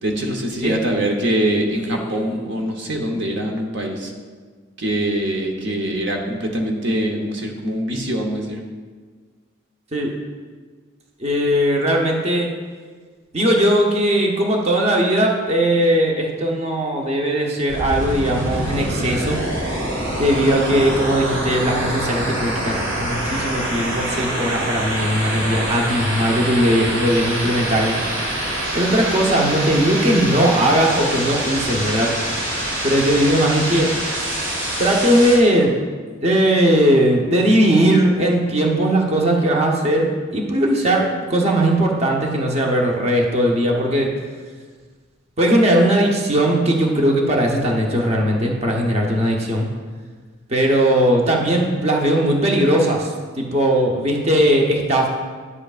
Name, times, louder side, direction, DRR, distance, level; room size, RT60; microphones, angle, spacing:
voice 1, 0.0-4.1 4.8-8.6, right 1 dB, 60° right, 1 dB, 0.9 m, -23 dB
voice 2, 1.9-2.3 9.9-10.1 11.2-12.5 13.3-19.4 20.2-28.0 28.7-32.1 32.8-33.9 34.8-35.7 36.2-44.1 45.4-49.7 50.5-55.1, right 1 dB, 35° right, 0 dB, 0.9 m, -18 dB
sound 1, 17.7-35.4, right 1 dB, 85° right, 2.3 m, -25 dB
11.0 x 7.7 x 2.4 m, 1.5 s
head